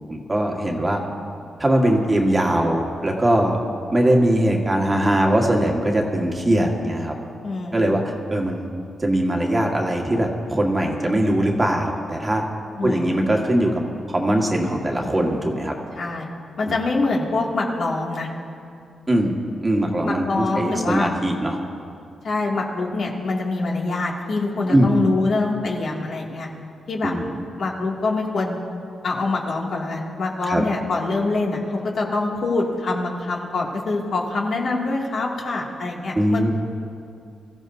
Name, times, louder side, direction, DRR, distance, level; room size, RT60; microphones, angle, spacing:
voice 1, 0.1-1.0 1.6-3.6 3.9-7.1 7.7-8.0 8.3-8.7 9.0-12.4 12.8-13.8 14.1-15.7 19.1-21.6 24.7-24.9 27.0-27.4 30.5-30.6 36.1-36.5, right 1 dB, 20° right, 0 dB, 1.6 m, -21 dB
voice 2, 7.4-7.8 12.8-13.1 15.9-16.3 16.6-18.3 20.0-21.1 22.2-26.5 26.9-27.1 27.6-28.6 29.0-36.5, left 3 dB, 60° left, -2 dB, 2.3 m, -24 dB
24.5 x 14.5 x 2.7 m, 2.5 s
cardioid pair, 120°, 0 cm